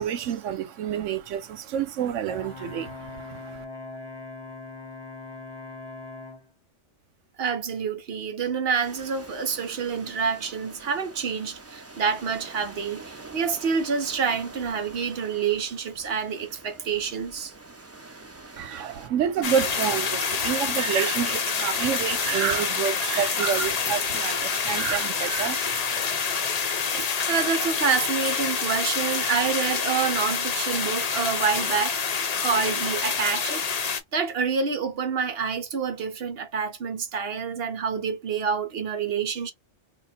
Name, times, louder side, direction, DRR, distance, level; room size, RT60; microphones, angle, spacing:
voice 1, 0.0-3.6 18.6-26.1, right 8 dB, 80° right, 1.0 m, -28 dB
Brass instrument, 2.2-6.5, left 3 dB, 20° left, 1.2 m, -40 dB
voice 2, 7.4-17.5 26.5-26.6 26.9-32.0 32.4-33.7 34.1-39.5, right 6 dB, 60° right, 0.9 m, -27 dB
sound 1, 8.8-19.1, right 3 dB, 20° right, 0.5 m, -45 dB
sound 2, 19.4-34.0, left 5 dB, 45° left, 0.6 m, -27 dB
2.9 x 2.3 x 4.2 m
omnidirectional pair, 1.3 m